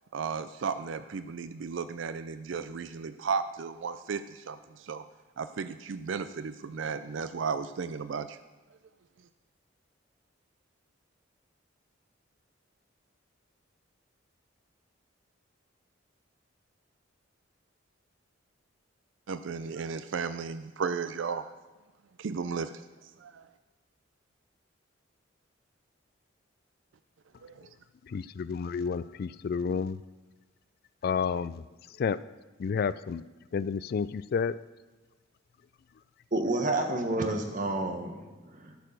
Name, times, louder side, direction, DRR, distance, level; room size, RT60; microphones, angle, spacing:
voice 1, 0.1-5.0 5.4-8.4 19.3-21.5 22.2-22.7 23.2-23.4 27.4-27.5, right 5 dB, 65° right, 12 dB, 0.4 m, -34 dB
voice 2, 28.1-30.0 31.0-31.6 32.0-32.2 32.6-33.2 33.5-34.6, left 6 dB, 50° left, 17 dB, 0.3 m, -30 dB
voice 3, 36.3-38.8, right 2 dB, 40° right, 4 dB, 1.4 m, -30 dB
12.5 x 6.6 x 6.7 m, 1.2 s
head